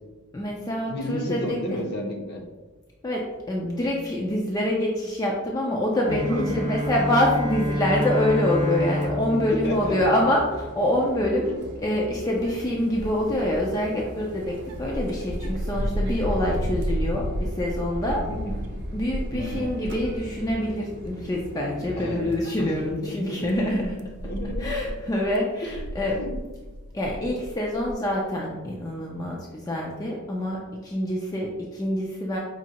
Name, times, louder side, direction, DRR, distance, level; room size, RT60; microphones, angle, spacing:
voice 1, 0.3-1.6 3.0-11.5 11.8-18.2 18.9-24.0 24.6-26.2 26.9-32.4, left 1 dB, 15° left, -2 dB, 0.3 m, -26 dB
voice 2, 0.8-2.4 6.1-6.7 9.3-10.0 11.4-11.6 18.3-18.6 19.3-19.7 21.9-22.2 22.6-23.8 24.2-24.8 25.6-25.8 26.2-26.4, left 1 dB, 45° left, 1 dB, 0.7 m, -31 dB
Bowed string instrument, 6.0-10.8, equal, 15° right, 0.7 m, -29 dB
Fixed-wing aircraft airplane, 6.1-22.9, right 1 dB, 50° right, 0.7 m, -40 dB
sound 1, 12.2-20.7 21.0-21.5 22.0-22.1 23.0-27.9, equal, 85° right, 0.4 m, -33 dB
5.0 x 2.7 x 2.8 m, 1.3 s
head